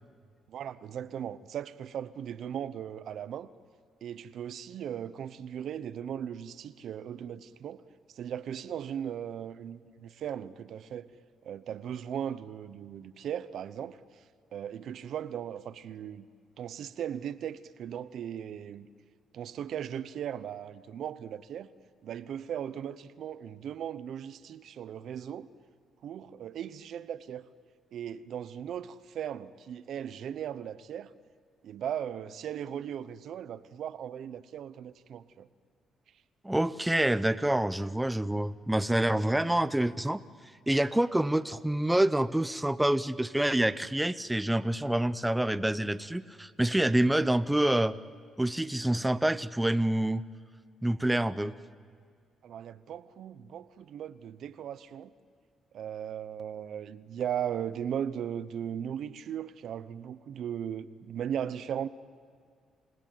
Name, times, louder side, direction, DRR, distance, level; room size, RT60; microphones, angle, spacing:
voice 1, 0.5-3.5 4.0-7.8 8.1-11.1 11.4-14.0 14.5-16.3 16.6-18.9 19.3-21.7 22.0-25.5 26.0-27.4 27.9-31.1 31.6-35.5 52.4-55.1 55.7-61.9, right 9 dB, 70° right, 0.9 m, -37 dB
voice 2, 36.4-40.2 40.7-48.0 48.4-50.2 50.8-51.5, right 1 dB, 5° right, 0.7 m, -27 dB
28.5 x 17.0 x 9.2 m
cardioid pair, 90°, 0 cm